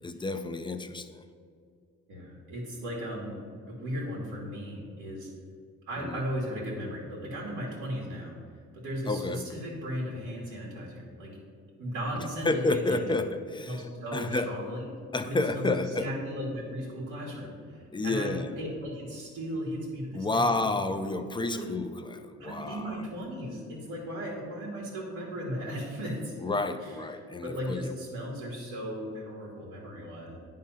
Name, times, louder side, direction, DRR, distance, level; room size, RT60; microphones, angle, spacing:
voice 1, 0.0-1.2 6.0-6.2 9.1-9.4 12.4-14.5 15.1-16.1 17.9-18.5 20.1-23.0 26.4-27.9, left 2 dB, 15° left, 8 dB, 0.5 m, -30 dB
voice 2, 2.1-3.4 3.7-5.3 5.9-8.3 8.7-11.4 11.8-13.0 13.7-14.9 15.2-20.7 21.4-21.7 22.4-26.3 26.8-30.4, equal, 85° right, -5 dB, 2.0 m, -36 dB
10.0 x 3.8 x 5.6 m, 2.3 s
cardioid pair, 90°, 30 cm